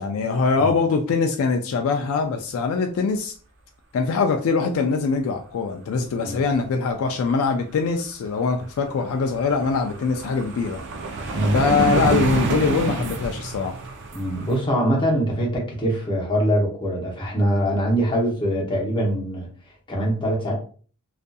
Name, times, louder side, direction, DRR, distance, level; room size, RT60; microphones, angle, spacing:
voice 1, 0.0-3.3 3.9-10.8 11.5-13.7, left 4 dB, 65° left, 4 dB, 0.3 m, -23 dB
sound 1, 8.5-8.6 8.9-14.6, right 3 dB, 55° right, 0.4 m, -27 dB
voice 2, 14.1-19.5 19.9-20.5, equal, 20° left, -2 dB, 0.8 m, -23 dB
2.6 x 2.4 x 2.2 m, 0.42 s
head